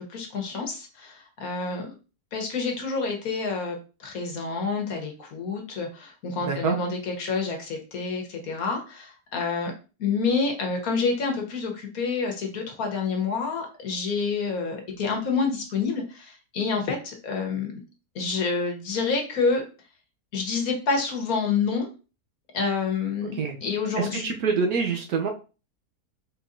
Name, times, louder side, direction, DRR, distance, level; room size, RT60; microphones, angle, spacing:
voice 1, 0.0-1.9 2.3-9.7 10.0-17.7 18.1-19.6 20.3-21.9 22.5-23.4 23.6-24.3, left 4 dB, 60° left, 3 dB, 1.4 m, -28 dB
voice 2, 6.4-6.8 23.2-23.6 23.9-25.3, right 5 dB, 65° right, 3 dB, 1.2 m, -26 dB
4.5 x 3.9 x 2.6 m, 0.33 s
omnidirectional pair, 1.8 m